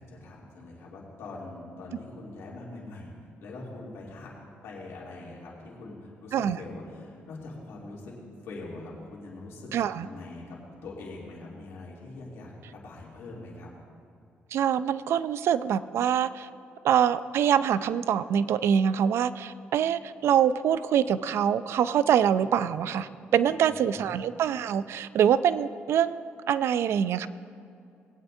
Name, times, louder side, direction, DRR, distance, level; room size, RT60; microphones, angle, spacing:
voice 1, 0.0-3.1 3.4-4.3 4.6-8.1 8.4-9.7 10.0-13.7 22.4-22.7 23.4-24.1, left 2 dB, 85° left, -4 dB, 2.8 m, -43 dB
voice 2, 9.7-10.1 14.5-16.5 16.8-27.3, right 9 dB, 75° right, 15 dB, 0.4 m, -25 dB
20.0 x 9.1 x 2.7 m, 2.4 s
cardioid pair, 85°, 4 cm